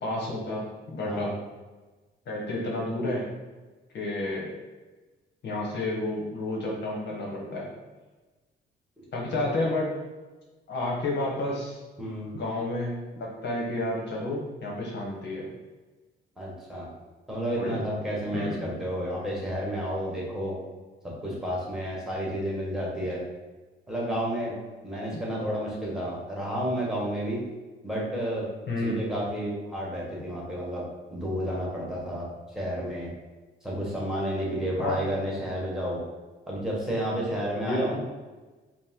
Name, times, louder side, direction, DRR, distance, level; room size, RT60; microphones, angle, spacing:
voice 1, 0.0-1.4 2.3-3.3 3.9-4.5 5.4-7.7 9.1-9.9 10.7-11.8 12.3-15.5 17.5-17.8 18.3-18.7 28.7-29.0 34.8-35.0 37.6-37.8, left 2 dB, 60° left, -2 dB, 1.1 m, -30 dB
voice 2, 12.0-12.3 16.4-16.9 17.3-20.6 21.2-23.3 23.9-24.5 24.8-27.4 27.8-28.5 28.8-30.8 31.1-33.1 33.6-36.0 36.5-38.0, equal, ahead, -5 dB, 1.4 m, -31 dB
5.1 x 2.1 x 3.7 m, 1.2 s
cardioid pair, 90°, 20 cm